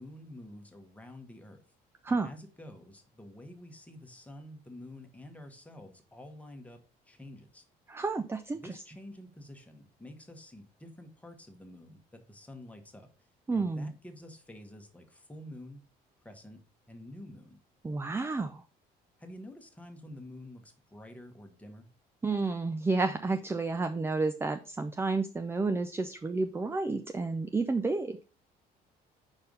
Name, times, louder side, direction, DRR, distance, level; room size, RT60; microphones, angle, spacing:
voice 1, 0.0-1.6 2.1-7.6 8.5-13.1 13.5-15.9 16.2-16.6 16.9-17.6 19.2-21.9, left 1 dB, 10° left, 5 dB, 1.4 m, -49 dB
voice 2, 7.9-8.6 13.5-13.9 17.8-18.6 22.2-28.3, right 3 dB, 15° right, 8 dB, 0.5 m, -31 dB
5.2 x 4.5 x 5.3 m, 0.34 s
cardioid pair, 110°, 17 cm